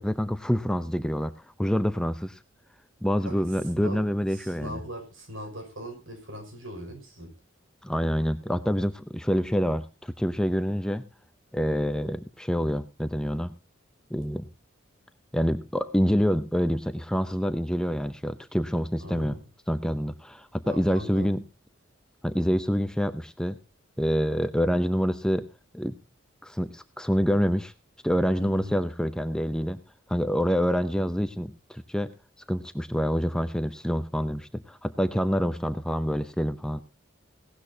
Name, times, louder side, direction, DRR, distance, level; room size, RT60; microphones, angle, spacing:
voice 1, 0.0-1.3 1.6-2.4 3.0-4.8 7.8-11.1 11.5-13.5 14.1-14.5 15.3-19.4 19.7-21.4 22.2-23.6 24.0-25.5 25.7-25.9 26.4-27.7 28.0-29.8 30.1-32.1 32.5-36.8, equal, 5° left, 11 dB, 0.6 m, -26 dB
voice 2, 4.3-7.3 19.0-19.4 20.6-21.3 28.4-28.8, equal, 80° right, 4 dB, 5.9 m, -40 dB
17.5 x 12.5 x 2.8 m, 0.28 s
head